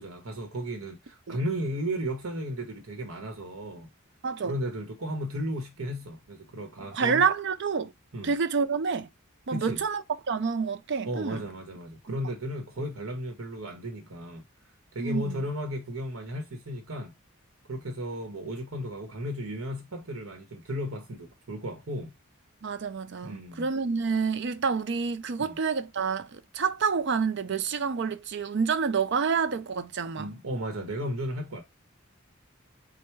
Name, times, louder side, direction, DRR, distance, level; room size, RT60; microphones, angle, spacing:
voice 1, 0.0-3.9 4.4-7.3 8.1-8.3 9.5-9.8 11.0-14.4 14.9-17.1 17.7-22.1 23.2-23.7 25.4-25.6 30.2-31.6, equal, 85° right, 1.1 m, -34 dB
voice 2, 4.2-4.6 6.9-7.9 8.2-9.1 9.5-11.4 12.1-12.2 15.0-15.4 22.6-30.3, right 5 dB, 55° right, 0.5 m, -28 dB
4.5 x 2.2 x 4.6 m
head